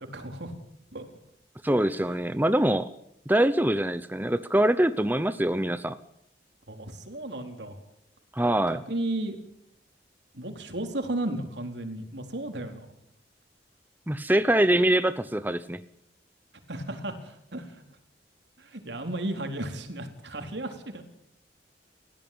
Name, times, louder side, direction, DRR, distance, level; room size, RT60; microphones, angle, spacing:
voice 1, 0.1-0.5 0.9-1.0 6.7-7.8 8.7-9.4 10.3-12.9 16.7-17.8 18.6-21.0, right 1 dB, 75° right, 5 dB, 4.3 m, -34 dB
voice 2, 1.6-2.9 3.3-6.0 8.3-8.8 14.1-15.8, right 1 dB, 10° right, 12 dB, 0.9 m, -24 dB
29.5 x 16.5 x 8.9 m, 0.78 s
head